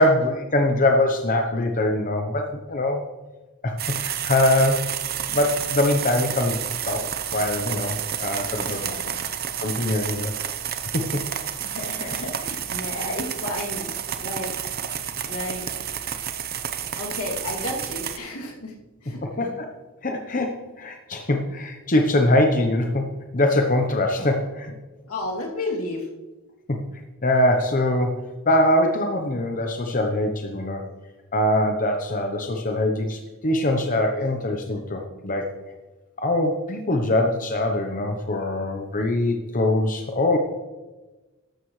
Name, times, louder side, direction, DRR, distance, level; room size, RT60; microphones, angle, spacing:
voice 1, 0.0-3.0 3.6-4.8 5.3-7.1 7.3-8.8 9.6-10.3 10.9-11.2 12.0-12.1 19.2-19.7 20.0-23.1 23.3-24.7 26.7-26.8 27.2-28.2 28.5-30.8 31.3-35.5 36.2-40.4, left 1 dB, 40° left, 3 dB, 0.9 m, -23 dB
sound 1, 3.8-18.2, right 9 dB, 45° right, 0.8 m, -30 dB
voice 2, 8.7-9.3 11.6-13.9 14.2-14.5 15.2-15.7 17.0-18.7 19.0-19.5 25.1-26.1, left 2 dB, 80° left, -1 dB, 2.7 m, -32 dB
13.5 x 12.5 x 3.2 m, 1.2 s
head